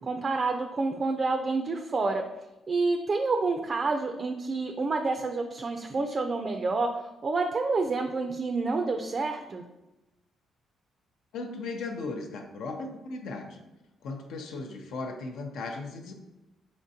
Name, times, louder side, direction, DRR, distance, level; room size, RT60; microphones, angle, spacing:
voice 1, 0.0-2.2 2.7-6.9 7.2-9.6, right 3 dB, 40° right, 5 dB, 0.3 m, -28 dB
voice 2, 11.3-13.6 14.0-16.1, left 3 dB, 80° left, 4 dB, 0.6 m, -37 dB
4.3 x 3.6 x 2.7 m, 0.97 s
cardioid pair, 90°, 0 cm